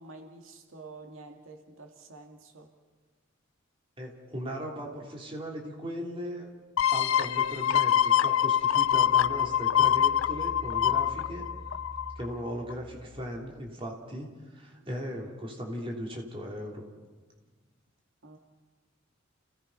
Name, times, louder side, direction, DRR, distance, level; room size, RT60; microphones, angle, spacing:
voice 1, 0.0-2.7 14.7-14.9 18.2-18.4, right 3 dB, 85° right, 3 dB, 2.2 m, -48 dB
voice 2, 4.0-6.5 6.9-11.4 12.1-16.8, equal, 25° right, 0 dB, 3.2 m, -38 dB
sound 1, 6.8-12.3 12.7-12.8, left 10 dB, 90° left, 0.6 m, -25 dB
Engine, 8.0-13.8, equal, 5° left, 4.8 m, -48 dB
29.5 x 17.5 x 5.6 m, 1.3 s
head